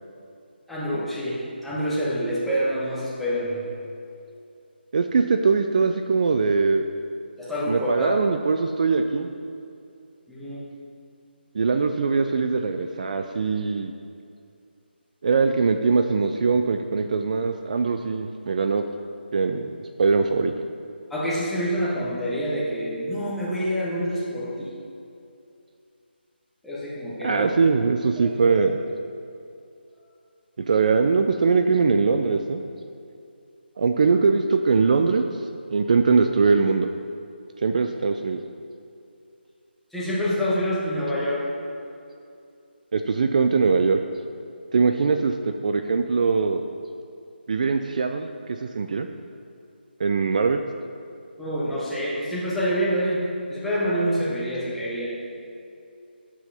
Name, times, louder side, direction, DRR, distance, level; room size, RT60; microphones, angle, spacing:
voice 1, 0.7-3.7 7.4-8.4 10.3-10.8 21.1-24.8 26.6-27.5 28.2-28.6 39.9-41.6 51.4-55.3, equal, ahead, -9 dB, 1.1 m, -27 dB
voice 2, 4.9-6.8 7.7-9.3 11.5-13.9 15.2-18.8 19.3-20.5 27.2-28.8 30.7-32.6 33.8-35.3 35.7-36.9 37.6-38.4 42.9-44.0 44.7-46.7 47.5-49.1 50.0-50.6, right 4 dB, 45° right, 7 dB, 0.4 m, -21 dB
7.8 x 5.6 x 5.5 m, 2.5 s
figure-of-eight pair, 150°, 6 cm